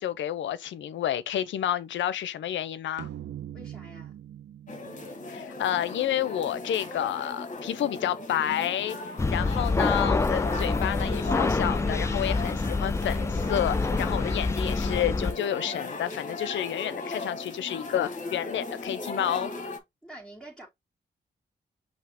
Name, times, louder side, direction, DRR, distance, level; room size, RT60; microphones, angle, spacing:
voice 1, 0.0-3.1 5.3-9.0 9.3-19.5, left 11 dB, 85° left, 0.5 m, -30 dB
sound 1, 3.0-6.5, right 11 dB, 75° right, 0.5 m, -43 dB
voice 2, 3.5-4.1 20.0-20.7, right 1 dB, ahead, 2.4 m, -46 dB
sound 2, 4.7-19.8, left 2 dB, 45° left, 1.3 m, -37 dB
sound 3, 9.2-15.3, left 3 dB, 15° left, 0.4 m, -27 dB
5.7 x 2.7 x 3.4 m
cardioid pair, 70°, 19 cm